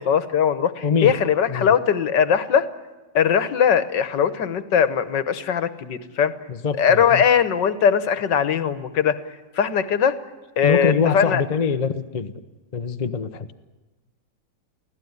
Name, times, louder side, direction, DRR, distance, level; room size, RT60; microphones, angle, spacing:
voice 1, 0.0-2.7 3.2-6.3 6.8-9.2 9.6-10.2 10.6-11.4, left 7 dB, 70° left, 13 dB, 1.8 m, -20 dB
voice 2, 0.8-1.2 1.5-1.7 6.5-7.2 10.6-12.3 12.7-13.5, left 5 dB, 35° left, 8 dB, 0.7 m, -24 dB
25.0 x 16.0 x 9.6 m, 1.2 s
omnidirectional pair, 2.0 m